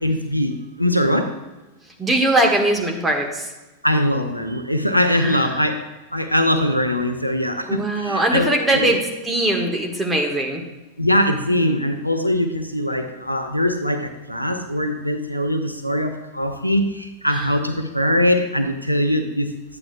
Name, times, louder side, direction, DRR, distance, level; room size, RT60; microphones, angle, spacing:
voice 1, 0.0-1.3 3.8-8.9 11.0-19.5, left 1 dB, 90° left, 7 dB, 0.7 m, -22 dB
voice 2, 2.0-3.5 5.1-5.4 7.7-10.6 17.3-17.5, right 1 dB, 15° right, 1 dB, 1.5 m, -21 dB
12.0 x 8.8 x 2.3 m, 1.1 s
figure-of-eight pair, 90°, 0 cm